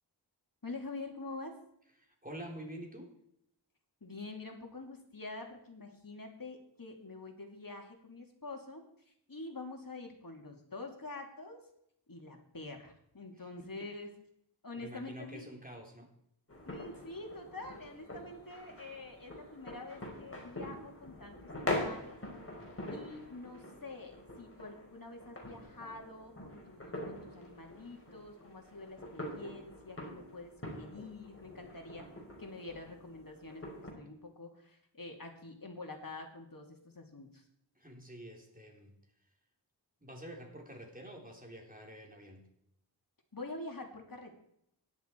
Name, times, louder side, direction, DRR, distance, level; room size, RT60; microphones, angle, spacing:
voice 1, 0.6-1.6 4.0-11.7 12.1-14.1 14.6-15.5 16.7-22.2 22.9-32.1 32.4-37.4 43.3-44.3, left 2 dB, 50° left, 3 dB, 2.6 m, -46 dB
voice 2, 2.0-3.1 13.8-13.9 14.7-16.1 37.8-39.0 40.0-42.5, right 1 dB, 20° right, 1 dB, 3.7 m, -48 dB
sound 1, 16.5-33.9, left 1 dB, 30° left, 4.3 m, -44 dB
16.0 x 11.0 x 4.6 m, 0.75 s
wide cardioid pair, 55°, 44 cm